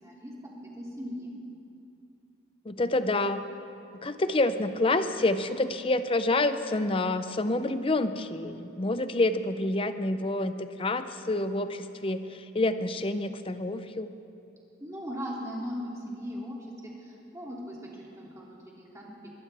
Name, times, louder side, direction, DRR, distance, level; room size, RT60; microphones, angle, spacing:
voice 1, 0.0-1.3 14.8-16.6 16.8-19.3, equal, 15° right, -4 dB, 2.7 m, -39 dB
voice 2, 2.6-3.4 4.0-14.1, left 2 dB, 25° left, 10 dB, 0.6 m, -28 dB
23.0 x 17.0 x 3.4 m, 2.7 s
head